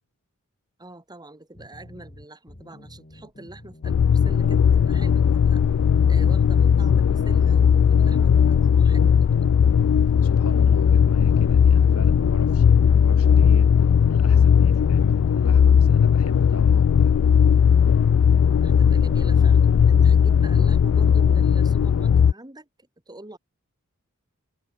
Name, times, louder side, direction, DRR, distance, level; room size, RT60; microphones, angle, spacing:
voice 1, 0.8-5.6 6.1-9.3 18.6-22.7 23.1-23.4, right 1 dB, 20° right, 2.8 m, -44 dB
sound 1, 1.5-16.0, left 1 dB, 40° left, 2.5 m, -47 dB
sound 2, 3.8-22.3, left 7 dB, 60° left, 0.3 m, -17 dB
voice 2, 10.2-13.7 14.1-17.1, left 2 dB, 75° left, 4.9 m, -38 dB
head